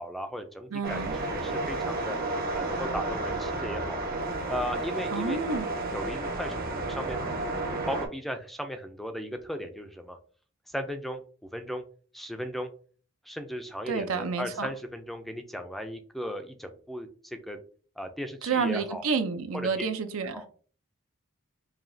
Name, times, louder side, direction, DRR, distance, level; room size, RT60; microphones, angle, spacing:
voice 1, 0.0-2.2 2.5-4.0 4.5-5.4 5.9-7.2 7.6-10.2 10.7-11.2 11.5-11.8 12.1-12.7 13.3-17.6 18.0-19.1 19.8-19.9 20.3-20.5, equal, ahead, 0.4 m, -36 dB
voice 2, 0.7-1.1 5.1-5.7 13.9-14.7 18.4-20.4, right 5 dB, 80° right, 0.6 m, -29 dB
sound 1, 0.8-8.1, right 2 dB, 45° right, 1.0 m, -32 dB
4.9 x 2.8 x 2.6 m
head